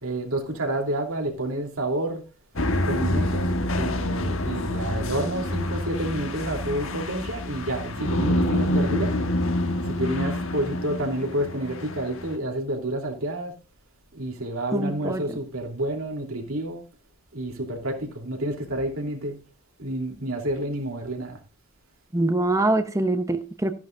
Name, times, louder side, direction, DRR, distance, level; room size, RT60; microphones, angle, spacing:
voice 1, 0.0-2.2 2.8-3.5 3.7-9.1 9.9-13.5 14.1-16.8 17.3-19.4 19.8-21.4, right 1 dB, 90° right, 3.0 m, -29 dB
sound 1, 2.6-12.4, left 1 dB, 75° left, 1.3 m, -27 dB
voice 2, 14.7-15.2 22.1-23.7, right 2 dB, 15° right, 0.7 m, -24 dB
14.0 x 11.0 x 2.5 m
head